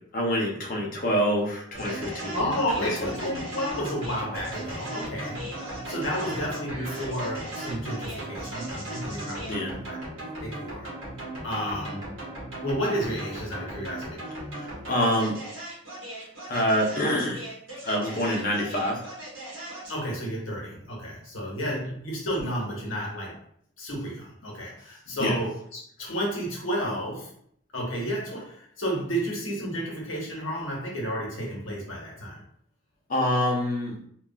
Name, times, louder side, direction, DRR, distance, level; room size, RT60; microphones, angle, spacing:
voice 1, 0.1-3.4 6.2-6.4 9.4-9.7 14.5-15.4 16.5-17.4 17.8-19.0 25.2-25.4 33.1-34.0, equal, 45° left, -1 dB, 0.6 m, -27 dB
sound 1, 1.7-20.0, right 1 dB, 75° right, 1.2 m, -37 dB
voice 2, 2.3-5.5 5.9-10.9 11.4-12.1 12.6-14.2 19.9-23.4 23.8-27.3 27.7-32.4, equal, 85° left, -3 dB, 1.0 m, -31 dB
3.3 x 2.3 x 2.3 m, 0.65 s
head